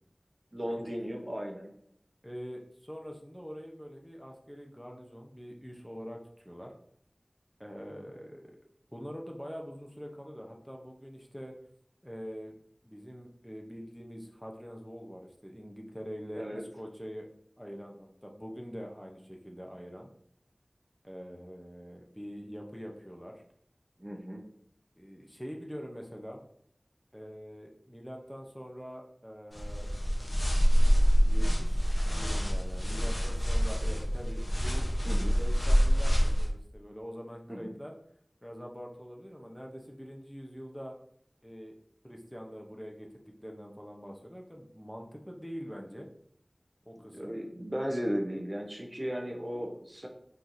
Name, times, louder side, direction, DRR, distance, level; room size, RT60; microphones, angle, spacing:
voice 1, 0.5-1.7 16.3-16.6 24.0-24.4 35.0-35.4 37.5-37.7 47.1-50.1, equal, 35° right, 2 dB, 0.7 m, -35 dB
voice 2, 2.2-6.2 6.4-6.7 7.6-8.5 8.9-11.5 12.0-12.6 12.8-17.3 17.6-20.1 21.0-23.4 25.0-26.4 27.1-30.2 31.2-34.9 35.4-37.9 38.4-40.9 41.4-41.7 42.0-46.1 46.9-47.3, equal, 5° left, 0 dB, 0.7 m, -44 dB
sound 1, 29.5-36.5, equal, 45° left, 0.8 m, -26 dB
4.4 x 4.0 x 2.6 m, 0.68 s
wide cardioid pair, 40°, 0 cm